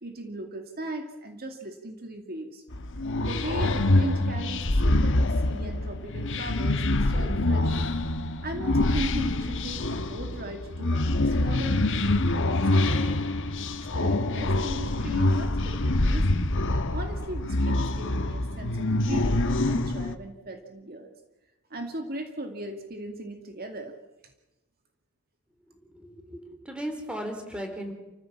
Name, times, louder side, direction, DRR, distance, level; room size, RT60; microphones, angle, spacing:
voice 1, 0.0-2.6 3.2-7.9 8.4-13.2 13.8-16.5 16.9-21.1 21.7-24.0, right 1 dB, 45° right, 4 dB, 2.3 m, -38 dB
sound 1, 2.7-20.2, left 2 dB, 60° left, 1.3 m, -25 dB
voice 2, 25.7-27.9, equal, 5° right, 4 dB, 3.7 m, -37 dB
29.5 x 15.0 x 7.4 m, 1.1 s
head